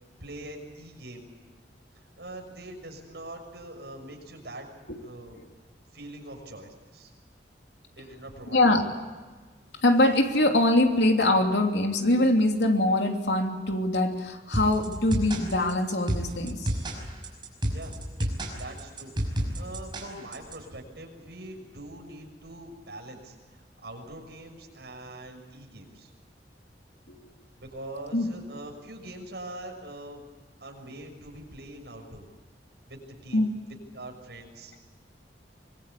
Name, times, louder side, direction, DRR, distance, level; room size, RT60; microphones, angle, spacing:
voice 1, 0.2-1.3 1.9-4.7 5.0-5.4 5.9-7.1 8.0-8.6 17.7-18.0 18.6-19.1 19.4-26.1 27.6-30.3 30.6-32.2 32.9-34.7, right 1 dB, 70° right, 3 dB, 6.3 m, -43 dB
voice 2, 8.5-8.8 9.8-16.7 27.1-27.2 28.1-28.3 33.3-33.5, left 1 dB, 85° left, 3 dB, 3.0 m, -23 dB
sound 1, 14.5-20.5, equal, 25° right, 5.6 m, -30 dB
24.5 x 22.0 x 8.4 m, 1.4 s
head